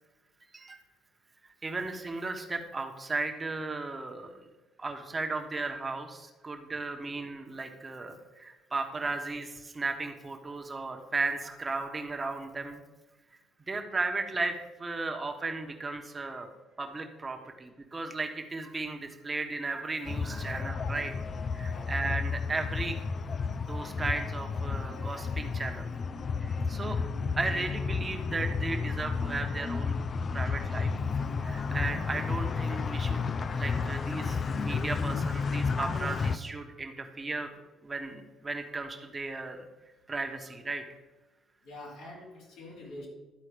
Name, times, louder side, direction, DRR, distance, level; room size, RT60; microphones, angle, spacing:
voice 1, 1.6-4.4 4.8-12.8 13.7-16.5 16.8-21.1 21.5-23.0 23.6-26.0 26.4-27.0 27.4-29.9 30.3-30.9 31.4-33.2 33.5-37.5 37.8-39.7 40.1-40.8, right 3 dB, 30° right, 5 dB, 1.2 m, -35 dB
sound 1, 20.1-36.4, left 5 dB, 45° left, 0.4 m, -32 dB
voice 2, 21.6-21.9 41.6-43.1, left 1 dB, 80° left, -4 dB, 2.7 m, -46 dB
12.0 x 4.1 x 5.0 m, 1.1 s
supercardioid pair, 65°, 0 cm